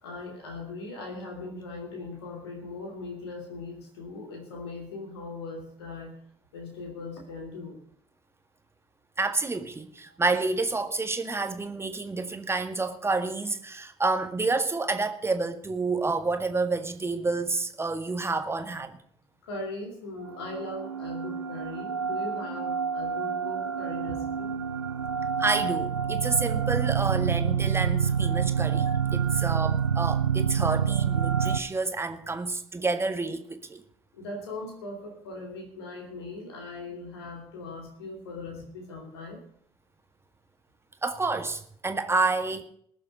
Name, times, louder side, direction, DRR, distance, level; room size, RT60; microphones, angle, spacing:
voice 1, 0.0-6.2 6.5-7.8 10.1-10.2 19.4-24.5 34.1-39.4, left 3 dB, 75° left, 2.9 m, -39 dB
voice 2, 9.2-19.0 25.4-33.8 41.0-42.6, right 3 dB, 20° right, 1.8 m, -29 dB
sound 1, 20.3-31.6, right 7 dB, 85° right, 0.5 m, -27 dB
20.0 x 7.6 x 5.3 m
figure-of-eight pair, 50°, 13 cm